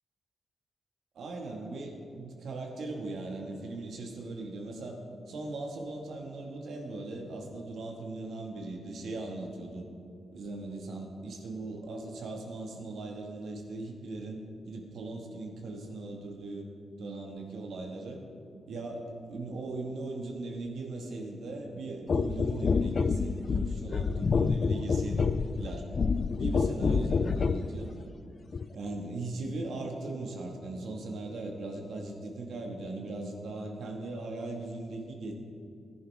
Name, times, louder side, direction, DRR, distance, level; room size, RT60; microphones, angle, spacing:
voice 1, 1.2-5.0 5.3-9.9 10.3-16.7 17.0-18.2 18.7-25.8 26.4-27.9 28.7-35.3, right 2 dB, 75° right, 1 dB, 1.9 m, -39 dB
sound 1, 22.1-27.7 28.5-28.7, left 5 dB, 40° left, 0.4 m, -28 dB
18.5 x 10.5 x 3.7 m, 2.4 s
wide cardioid pair, 170°, 0 cm